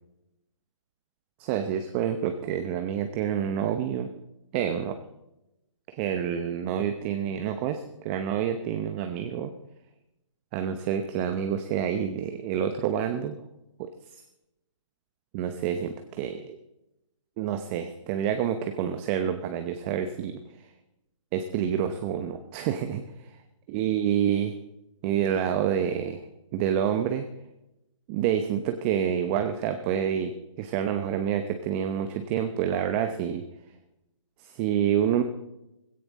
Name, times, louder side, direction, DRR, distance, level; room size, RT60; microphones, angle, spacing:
voice 1, 1.4-4.1 4.5-5.0 5.9-9.5 10.5-13.4 13.8-14.2 15.3-16.6 17.4-20.7 21.3-23.3 23.7-24.6 25.0-26.2 26.5-27.3 28.1-30.3 30.6-33.4 34.4-35.2, right 9 dB, 20° right, 8 dB, 0.8 m, -28 dB
16.5 x 15.0 x 4.1 m, 0.88 s
hypercardioid pair, 150°, 17 cm